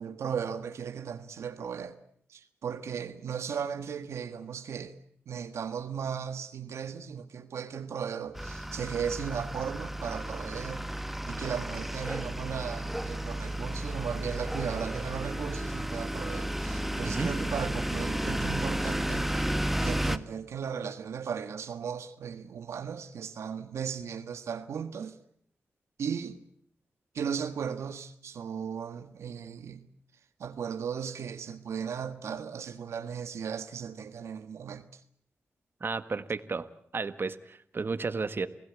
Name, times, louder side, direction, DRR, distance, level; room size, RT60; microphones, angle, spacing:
voice 1, 0.0-1.9 2.3-4.9 5.3-10.9 11.3-19.5 19.8-25.2 26.0-26.4 27.1-29.8 30.4-35.0, right 7 dB, 85° right, 1.5 m, -36 dB
sound 1, 8.4-20.2, right 1 dB, 5° right, 1.5 m, -33 dB
voice 2, 35.8-36.7 36.9-38.5, right 4 dB, 55° right, 1.7 m, -32 dB
28.5 x 17.0 x 8.5 m
cardioid pair, 45°, 5 cm